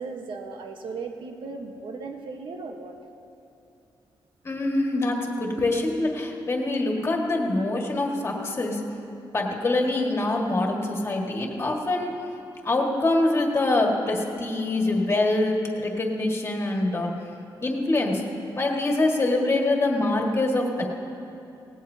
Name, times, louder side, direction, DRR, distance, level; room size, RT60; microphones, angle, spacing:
voice 1, 0.0-2.9, right 4 dB, 80° right, 3 dB, 1.2 m, -36 dB
voice 2, 4.4-8.8 9.3-12.1 12.6-17.1 17.6-18.2 18.5-20.9, left 2 dB, 30° left, 0 dB, 1.7 m, -24 dB
18.5 x 17.5 x 2.8 m, 2.7 s
wide cardioid pair, 145°, 8 cm